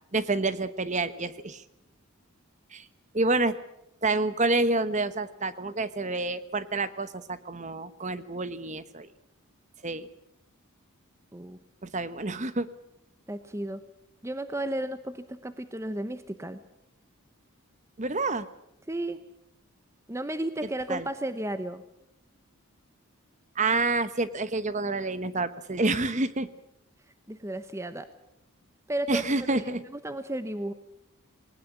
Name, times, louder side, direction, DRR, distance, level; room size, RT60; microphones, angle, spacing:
voice 1, 0.1-1.6 2.7-2.8 3.1-3.6 4.0-9.1 9.8-10.1 11.8-12.7 18.0-18.5 20.9-21.0 23.6-26.5 29.1-29.8, right 2 dB, 30° right, 13 dB, 1.1 m, -28 dB
voice 2, 13.3-13.8 14.2-16.6 18.9-19.2 20.1-21.8 27.3-28.1 28.9-29.2 29.5-30.7, right 1 dB, 10° right, 11 dB, 0.8 m, -33 dB
20.0 x 19.5 x 8.5 m, 0.83 s
head